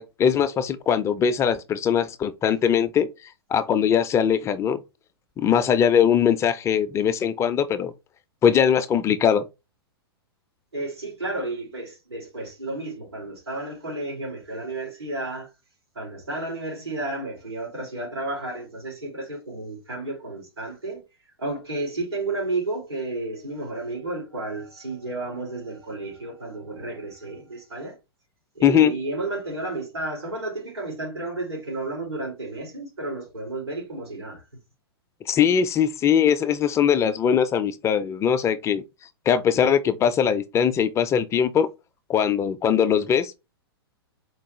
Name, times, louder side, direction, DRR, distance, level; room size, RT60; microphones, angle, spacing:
voice 1, 0.0-3.1 3.5-4.8 5.4-7.9 8.4-9.4 28.6-28.9 35.3-38.8 39.3-41.7 42.1-43.6, left 8 dB, 20° left, 0.4 m, -21 dB
voice 2, 10.7-15.5 15.9-21.0 21.4-28.0 28.5-34.4, right 2 dB, 90° right, 2.5 m, -32 dB
4.5 x 2.2 x 3.0 m
hypercardioid pair, 115°, 13 cm